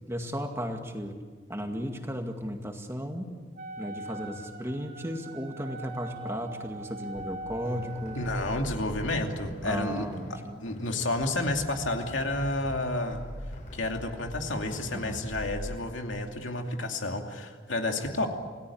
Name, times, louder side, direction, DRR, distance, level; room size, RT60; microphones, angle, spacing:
voice 1, 0.1-1.2 1.5-3.3 3.8-8.2 9.6-10.7 14.9-15.3, equal, 15° right, 4 dB, 2.1 m, -35 dB
Wind instrument woodwind instrument, 3.5-8.6, right 2 dB, 50° right, 3.8 m, -42 dB
sound 1, 7.2-15.9, equal, 45° left, 5.9 m, -42 dB
voice 2, 8.2-10.1 10.6-13.2 13.7-18.3, left 2 dB, 90° left, 3 dB, 2.7 m, -30 dB
28.0 x 18.0 x 8.7 m, 1.6 s
head